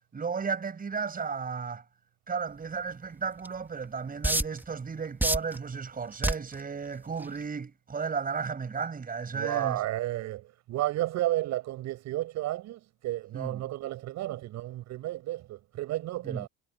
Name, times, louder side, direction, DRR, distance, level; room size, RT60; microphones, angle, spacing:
voice 1, 0.1-1.8 2.3-9.8 13.3-13.6 16.2-16.5, right 5 dB, 30° right, 6.6 m, -34 dB
sound 1, 3.5-3.6 4.2-4.7 5.2-5.6 6.2-6.6 7.2-7.4, right 1 dB, 5° right, 3.0 m, -25 dB
voice 2, 9.3-16.5, right 15 dB, 65° right, 7.2 m, -32 dB
supercardioid pair, 90°, 30 cm